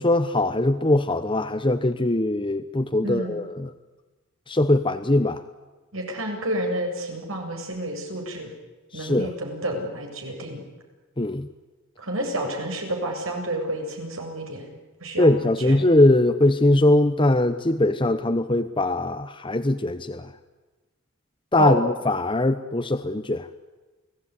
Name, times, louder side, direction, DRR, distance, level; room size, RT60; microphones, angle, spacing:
voice 1, 0.0-3.7 4.5-5.4 8.9-9.3 11.2-11.5 15.2-20.3 21.5-23.5, left 1 dB, 25° left, 9 dB, 0.9 m, -21 dB
voice 2, 3.0-3.4 5.9-8.5 8.9-10.6 12.0-14.7 15.0-15.8 21.6-21.8, right 1 dB, 80° right, 2 dB, 7.8 m, -30 dB
29.5 x 19.0 x 9.9 m, 1.2 s
head